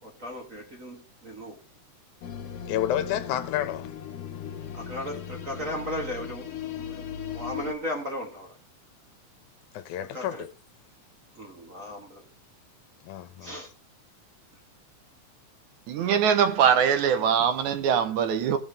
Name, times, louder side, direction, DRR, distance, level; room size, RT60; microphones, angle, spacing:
voice 1, 0.0-1.6 4.7-7.0 7.3-8.6 10.0-10.4 11.3-12.2 13.4-13.7, equal, 35° right, 1.3 m, -36 dB
sound 1, 2.2-7.7, left 8 dB, 60° left, 1.9 m, -37 dB
voice 2, 2.7-3.9 9.7-10.5 13.0-13.5, left 11 dB, 80° left, 2.2 m, -30 dB
voice 3, 15.9-18.6, right 8 dB, 75° right, 2.3 m, -22 dB
17.5 x 7.4 x 3.5 m
omnidirectional pair, 3.5 m